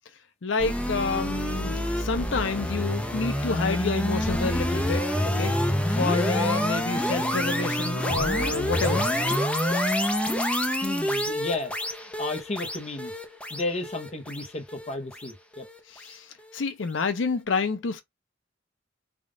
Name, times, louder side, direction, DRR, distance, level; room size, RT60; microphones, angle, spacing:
voice 1, 0.4-5.5 5.9-9.1 15.9-16.3 16.5-18.0, left 4 dB, 75° left, 0.6 m, -29 dB
sound 1, 0.6-15.8, equal, 5° left, 0.5 m, -27 dB
voice 2, 10.8-11.7 12.2-13.1 13.5-15.7, left 2 dB, 35° left, 0.8 m, -33 dB
3.6 x 2.4 x 3.7 m
head